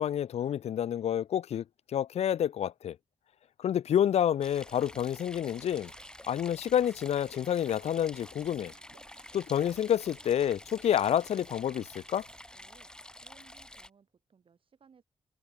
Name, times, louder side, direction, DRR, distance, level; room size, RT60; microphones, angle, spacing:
voice 1, 0.0-3.0 3.6-5.9 6.3-8.7 9.3-12.3, left 10 dB, 85° left, 0.5 m, -29 dB
sound 1, 4.4-13.9, left 1 dB, 10° left, 4.3 m, -49 dB
sound 2, 5.5-12.4, right 8 dB, 90° right, 7.8 m, -62 dB
voice 2, 12.5-12.9 13.2-15.0, right 6 dB, 55° right, 4.1 m, -62 dB
open air
wide cardioid pair, 125°, 11 cm